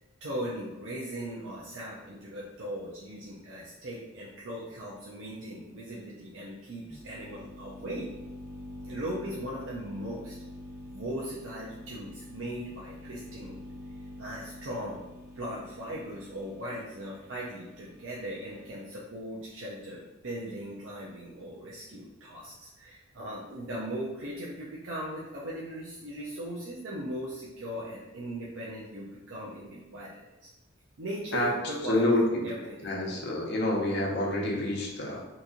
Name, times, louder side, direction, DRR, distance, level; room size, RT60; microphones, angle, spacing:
voice 1, 0.2-8.1 8.9-10.3 10.9-13.6 14.2-15.0 15.3-30.5 31.0-32.1 32.4-32.9, right 1 dB, 70° right, -6 dB, 0.6 m, -39 dB
sound 1, 6.9-18.7, left 1 dB, 15° right, 1.3 m, -46 dB
voice 2, 31.8-32.4 32.8-35.2, left 1 dB, 55° left, -2 dB, 0.8 m, -27 dB
2.9 x 2.6 x 3.7 m, 1.0 s
head